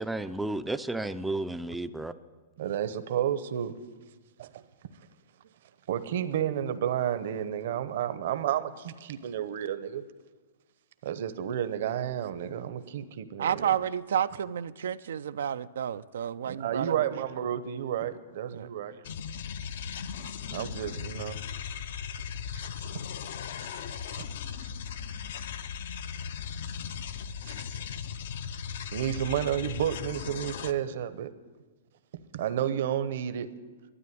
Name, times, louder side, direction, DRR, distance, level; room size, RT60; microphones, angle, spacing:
voice 1, 0.0-2.1, right 2 dB, 5° right, 11 dB, 0.4 m, -32 dB
voice 2, 2.6-3.8 4.4-4.5 5.9-10.0 11.0-13.7 16.4-19.0 20.5-21.4 22.8-23.0 23.7-24.3 27.5-27.6 28.9-31.3 32.3-33.5, right 10 dB, 60° right, 12 dB, 0.9 m, -31 dB
voice 3, 13.4-17.1 18.5-18.7, right 9 dB, 80° right, 13 dB, 0.4 m, -30 dB
sound 1, 19.0-30.7, left 7 dB, 60° left, 0.6 m, -37 dB
12.5 x 9.3 x 9.3 m, 1.4 s
hypercardioid pair, 155°, 0 cm